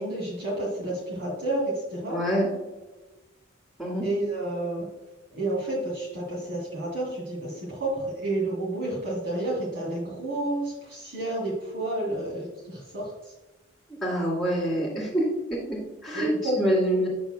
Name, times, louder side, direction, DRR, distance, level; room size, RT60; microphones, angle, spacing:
voice 1, 0.0-2.2 4.0-4.9 5.3-13.3 16.1-16.6, right 1 dB, 55° right, -5 dB, 1.8 m, -30 dB
voice 2, 2.1-2.5 3.8-4.0 14.0-15.2 15.5-16.3 16.6-17.1, equal, ahead, -10 dB, 2.1 m, -26 dB
6.8 x 6.7 x 2.2 m, 1.1 s
head